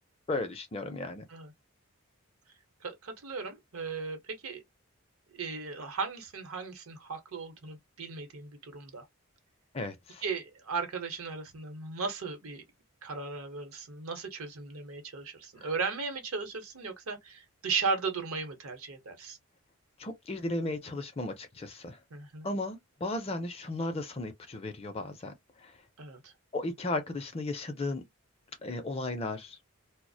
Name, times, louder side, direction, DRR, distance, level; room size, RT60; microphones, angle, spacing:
voice 1, 0.3-1.2 9.7-10.2 15.6-15.7 20.0-22.0 22.4-25.3 25.6-25.7 26.5-28.0 28.6-29.6, left 2 dB, 25° left, 0.4 m, -35 dB
voice 2, 2.8-4.6 5.3-9.1 10.2-12.6 13.0-19.4 22.1-22.5 26.0-26.3, right 4 dB, 75° right, 0.8 m, -36 dB
2.3 x 2.0 x 2.6 m
head